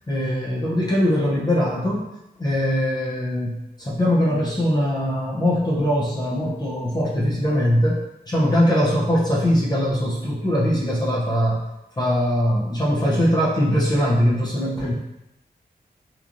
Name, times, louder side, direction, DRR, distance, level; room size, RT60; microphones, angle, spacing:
voice 1, 0.1-2.1 2.4-8.0 8.3-11.6 12.0-14.9, equal, 25° left, -5 dB, 0.5 m, -21 dB
2.9 x 2.3 x 2.5 m, 0.89 s
wide cardioid pair, 100°, 17 cm